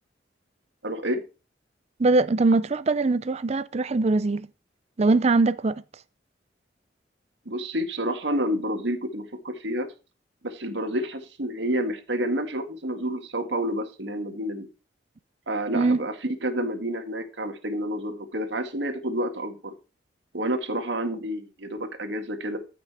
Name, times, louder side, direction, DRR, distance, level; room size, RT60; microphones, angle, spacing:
voice 1, 0.8-1.2 7.5-9.9 10.4-14.7 15.5-19.8 20.3-22.6, right 1 dB, 75° right, 1.9 m, -29 dB
voice 2, 2.0-4.5 5.0-5.8 15.7-16.1, right 3 dB, 35° right, 0.5 m, -22 dB
14.0 x 6.0 x 4.4 m
head